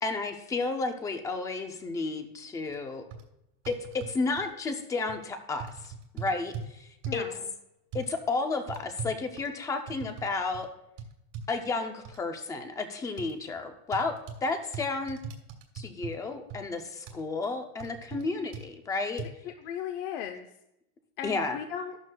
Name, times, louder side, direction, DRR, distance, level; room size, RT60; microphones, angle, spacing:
voice 1, 0.0-3.0 3.7-7.3 7.9-10.7 11.5-15.2 15.8-19.2 21.2-21.6, left 3 dB, 10° left, 6 dB, 0.4 m, -32 dB
sound 1, 2.7-2.8 3.1-3.2 3.7-4.5 5.1-5.2 5.6-6.7 7.0-7.3 7.9-8.1 8.7-10.3 10.5-10.7 11.0-11.5 12.0-12.2 13.2-13.3 13.9-14.4 14.7-16.2 16.5-16.6 17.1-17.2 17.8-18.2 18.5-18.7 19.2-19.3, right 5 dB, 40° right, 1.5 m, -39 dB
voice 2, 19.4-20.5 21.2-22.0, left 9 dB, 50° left, 5 dB, 0.7 m, -36 dB
13.5 x 12.0 x 2.2 m, 0.85 s
supercardioid pair, 170°, 41 cm